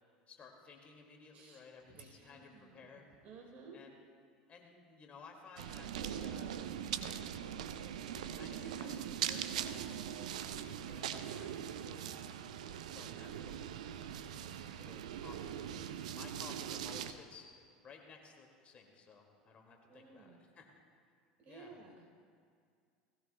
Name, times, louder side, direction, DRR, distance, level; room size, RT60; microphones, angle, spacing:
voice 1, 0.3-3.1 3.7-4.0 4.5-6.6 6.8-7.2 8.0-12.1 12.8-13.7 14.1-20.7 21.5-21.8, left 4 dB, 35° left, 2 dB, 2.1 m, -57 dB
voice 2, 1.9-2.9 3.2-3.8 19.9-20.4 21.4-21.9, right 4 dB, 45° right, 1 dB, 3.6 m, -55 dB
sound 1, 5.6-17.1, right 9 dB, 75° right, 0.6 m, -41 dB
19.5 x 17.0 x 2.2 m, 2.2 s
hypercardioid pair, 75°, 4 cm